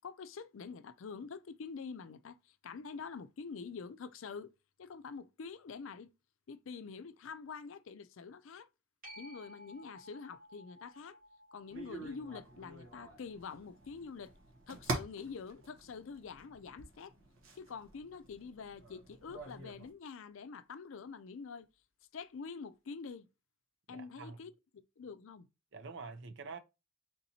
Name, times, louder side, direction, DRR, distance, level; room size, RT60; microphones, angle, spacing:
voice 1, 0.0-4.5 4.8-6.1 6.5-8.7 9.2-11.2 11.5-14.3 14.7-17.1 17.6-21.7 22.1-23.3 23.9-25.5, left 5 dB, 65° left, 0.4 m, -46 dB
sound 1, 9.0-16.2 21.7-21.8, equal, 40° right, 2.2 m, -58 dB
sound 2, 11.7-19.9, right 2 dB, 75° right, 1.1 m, -46 dB
voice 2, 23.9-24.4 25.7-26.6, right 4 dB, 60° right, 0.6 m, -46 dB
4.2 x 3.7 x 2.7 m
head